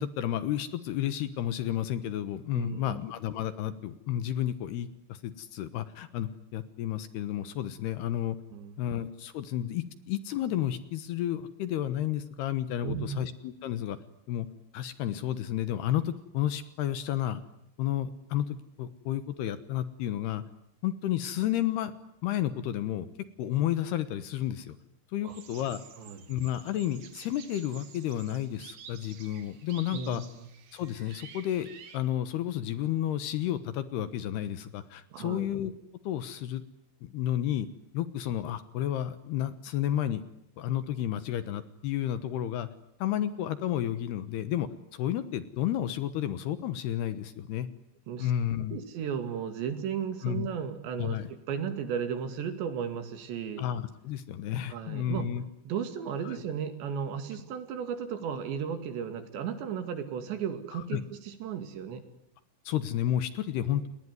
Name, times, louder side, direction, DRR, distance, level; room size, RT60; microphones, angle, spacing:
voice 1, 0.0-8.4 8.8-14.0 14.3-14.5 14.7-17.4 17.8-20.4 20.8-21.9 22.2-23.1 23.4-24.8 25.1-25.8 26.3-30.2 30.7-31.7 31.9-35.7 36.0-36.6 37.0-37.7 37.9-40.2 40.6-42.7 43.0-47.7 48.2-48.8 50.2-50.5 51.0-51.3 53.6-55.4 56.3-56.4 60.7-61.0 62.7-63.9, left 11 dB, 70° left, 13 dB, 2.9 m, -31 dB
voice 2, 2.5-3.0 8.5-8.7 12.8-13.3 25.2-25.4 26.0-26.2 29.9-30.4 35.1-35.5 48.1-48.3 48.7-53.6 54.7-55.3 55.7-62.0 63.7-63.9, right 7 dB, 70° right, 9 dB, 4.5 m, -35 dB
sound 1, 25.3-32.0, right 7 dB, 55° right, 3.5 m, -50 dB
29.5 x 21.0 x 9.6 m, 0.80 s
omnidirectional pair, 5.4 m